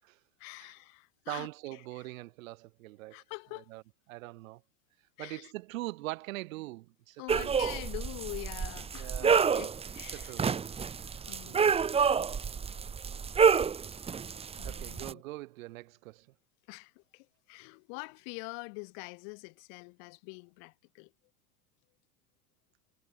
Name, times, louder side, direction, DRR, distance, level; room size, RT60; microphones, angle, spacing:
voice 1, 0.4-2.1 3.1-3.7 5.2-5.5 7.2-10.6 11.1-11.7 14.6-15.2 16.7-21.1, left 40 dB or more, 50° left, 5.8 m, -45 dB
voice 2, 1.3-3.2 3.7-3.8 4.1-4.6 5.2-7.6 9.0-9.5 10.1-10.5 11.4-11.7 14.6-16.3, right 19 dB, 55° right, 4.5 m, -42 dB
sound 1, 7.3-15.1, right 6 dB, 10° right, 0.9 m, -29 dB
figure-of-eight pair, 85°, 48 cm